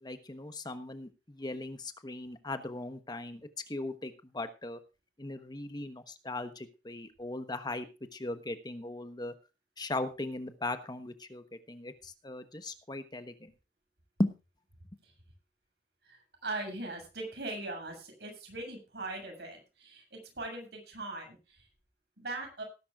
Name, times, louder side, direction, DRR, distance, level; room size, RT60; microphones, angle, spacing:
voice 1, 0.0-3.4 3.7-4.8 5.2-7.9 8.1-9.3 9.8-13.5 14.2-14.3, left 2 dB, 25° left, 10 dB, 1.1 m, -38 dB
voice 2, 16.0-21.6 22.2-22.6, right 2 dB, 65° right, 3 dB, 7.3 m, -40 dB
19.0 x 11.5 x 2.5 m, 0.30 s
head